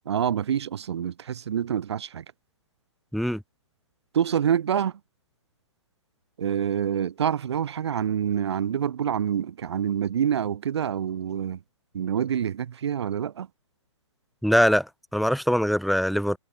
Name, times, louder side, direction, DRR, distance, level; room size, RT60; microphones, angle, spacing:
voice 1, 0.1-2.2 4.1-4.9 6.4-11.6 11.9-13.5, right 9 dB, 60° right, 1.3 m, -26 dB
voice 2, 14.4-16.4, equal, ahead, 0.7 m, -22 dB
figure-of-eight pair, 125°, 16 cm